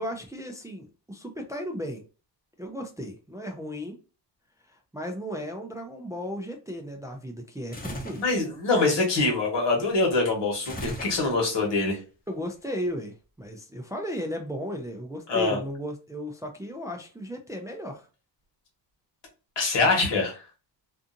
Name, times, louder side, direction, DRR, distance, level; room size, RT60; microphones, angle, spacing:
voice 1, 0.0-2.0 2.6-4.0 4.7-8.2 12.3-18.1, equal, 10° right, 3 dB, 0.3 m, -35 dB
sound 1, 7.7-8.3 10.6-11.6, equal, 20° left, 0.8 m, -36 dB
voice 2, 8.1-12.0 15.3-15.6 19.6-20.4, left 3 dB, 80° left, -1 dB, 1.3 m, -24 dB
2.6 x 2.5 x 2.5 m, 0.34 s
cardioid pair, 105°, 43 cm